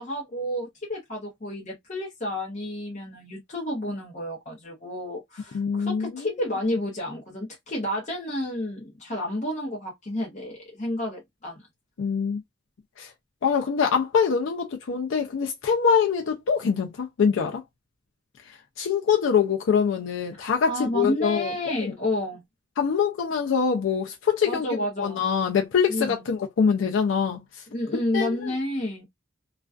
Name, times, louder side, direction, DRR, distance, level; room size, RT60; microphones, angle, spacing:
voice 1, 0.0-11.6 20.3-22.4 24.5-25.3 25.9-26.2 27.7-29.1, left 1 dB, 35° left, 0.7 m, -30 dB
voice 2, 5.5-6.3 12.0-12.4 13.0-13.1 13.4-17.6 18.5-21.9 22.8-24.7 25.0-27.6 28.1-28.5, left 6 dB, 75° left, 0.4 m, -24 dB
2.3 x 2.2 x 2.3 m
head